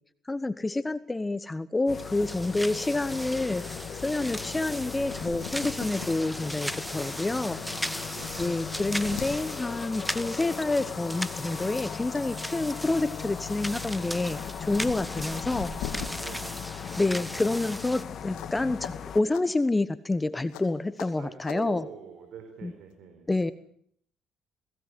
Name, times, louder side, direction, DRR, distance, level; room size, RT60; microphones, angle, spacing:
voice 1, 0.3-3.7 4.0-7.6 8.4-15.7 17.0-21.9 22.6-22.7 23.3-23.5, left 2 dB, 20° left, 15 dB, 1.1 m, -28 dB
sound 1, 1.9-19.2, left 8 dB, 55° left, 1.7 m, -39 dB
sound 2, 1.9-18.0, equal, ahead, 1.3 m, -38 dB
sound 3, 5.0-6.1 6.6-6.7 7.6-7.7 8.0-9.3 10.6-10.8 11.2-12.2 12.6-16.1 18.3-18.6 18.8-18.9 19.3-19.4 20.5-20.6 21.0-21.1 21.4-21.6, left 9 dB, 80° left, 2.7 m, -41 dB
voice 2, 7.3-8.6 14.9-15.3 16.2-16.6 21.2-23.3, right 7 dB, 65° right, 5 dB, 4.6 m, -45 dB
22.0 x 18.0 x 8.1 m, 0.64 s
supercardioid pair, 60°, 0 cm